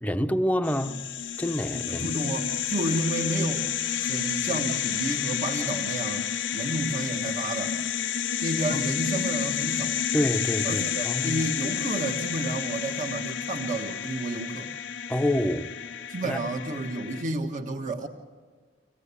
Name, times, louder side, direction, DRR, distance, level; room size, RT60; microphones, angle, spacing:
voice 1, 0.0-1.1 1.4-2.1 8.7-8.9 10.1-11.4 15.1-15.7 16.2-16.4, left 1 dB, 10° left, 0.8 m, -27 dB
sound 1, 0.6-17.2, left 9 dB, 80° left, 0.7 m, -30 dB
voice 2, 1.9-3.7 4.0-6.3 6.5-7.8 8.4-10.0 10.6-14.7 16.1-18.1, right 2 dB, 45° right, 1.5 m, -31 dB
26.5 x 17.0 x 8.4 m
head